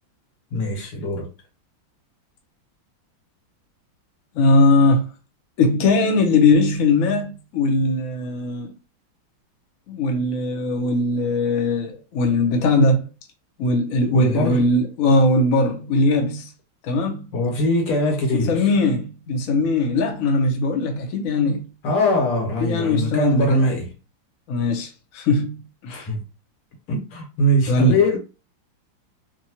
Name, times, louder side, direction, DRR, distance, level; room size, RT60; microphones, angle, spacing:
voice 1, 0.5-1.3 14.1-14.6 17.3-18.7 21.8-23.9 25.9-26.2 26.9-28.2, equal, 85° left, 2.0 m, -22 dB
voice 2, 4.4-5.1 5.6-8.7 9.9-13.0 13.6-16.5 16.8-17.2 18.3-21.7 22.6-23.6 24.5-25.5 25.8-26.0 27.7-28.2, left 2 dB, 60° left, 0.9 m, -20 dB
4.0 x 2.3 x 2.9 m
omnidirectional pair, 2.3 m